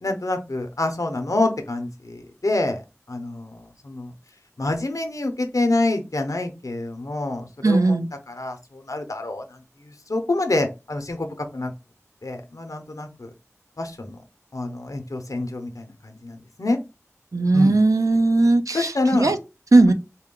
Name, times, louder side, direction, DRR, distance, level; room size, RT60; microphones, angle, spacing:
voice 1, 0.0-2.8 3.1-4.1 4.6-7.9 8.3-11.7 12.2-13.3 13.8-14.2 14.5-16.8 17.5-17.8 18.7-19.3, left 2 dB, 90° left, 0.7 m, -27 dB
voice 2, 7.6-8.1 17.3-19.4 19.7-19.9, right 2 dB, 85° right, 0.5 m, -18 dB
4.3 x 2.2 x 3.7 m
wide cardioid pair, 40°, 6 cm